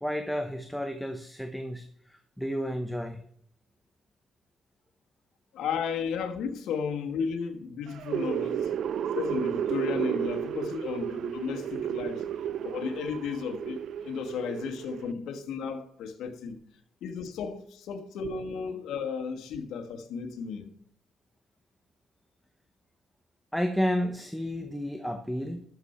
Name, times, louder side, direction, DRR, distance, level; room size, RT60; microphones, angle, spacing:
voice 1, 0.0-3.2 23.5-25.6, equal, ahead, 1.0 m, -31 dB
voice 2, 5.5-8.7 9.1-12.3 12.6-16.6 17.0-20.7, left 6 dB, 80° left, 1.4 m, -34 dB
sound 1, 7.9-15.1, right 9 dB, 70° right, 0.4 m, -32 dB
12.5 x 6.9 x 4.4 m
cardioid pair, 90°, 0 cm